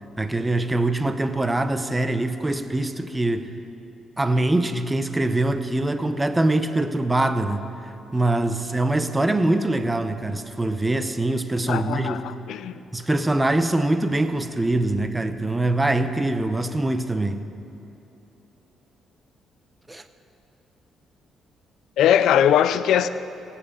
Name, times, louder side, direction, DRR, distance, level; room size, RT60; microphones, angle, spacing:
voice 1, 0.2-3.5 4.2-7.6 8.1-12.2 12.9-17.4 19.9-20.0, right 2 dB, 15° right, 0.8 m, -23 dB
voice 2, 11.7-12.7 22.0-23.1, left 9 dB, 80° left, 0.5 m, -20 dB
17.0 x 5.8 x 8.4 m
cardioid pair, 90°, 0 cm